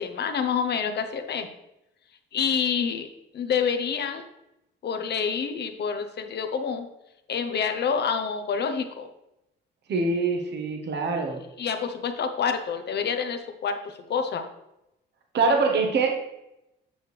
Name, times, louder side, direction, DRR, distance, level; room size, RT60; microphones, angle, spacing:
voice 1, 0.0-1.5 2.3-3.1 3.3-4.2 4.8-6.9 7.3-9.1 11.6-14.4, left 6 dB, 60° left, 7 dB, 0.8 m, -27 dB
voice 2, 9.9-11.4 15.3-16.3, right 4 dB, 60° right, 3 dB, 1.2 m, -24 dB
7.9 x 6.2 x 3.3 m, 0.88 s
cardioid pair, 90°, 20 cm